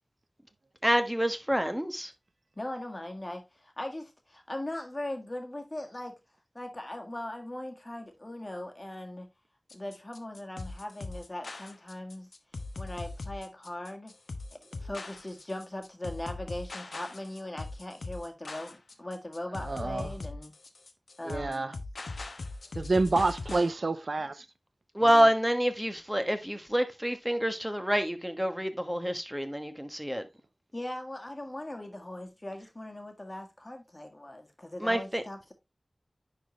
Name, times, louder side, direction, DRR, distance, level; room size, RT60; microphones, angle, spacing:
voice 1, 0.8-2.1 24.9-30.2 34.8-35.2, equal, 5° right, 1.2 m, -27 dB
voice 2, 2.6-6.2 6.6-9.3 9.7-12.3 12.8-14.1 14.5-20.5 21.2-21.8 30.7-35.5, left 1 dB, 30° left, 1.7 m, -39 dB
sound 1, 9.7-23.7, left 3 dB, 85° left, 0.9 m, -40 dB
voice 3, 19.7-20.1 21.3-21.7 22.8-24.4 25.2-25.3, right 3 dB, 70° right, 0.6 m, -28 dB
10.0 x 4.2 x 3.1 m
wide cardioid pair, 65°, 0 cm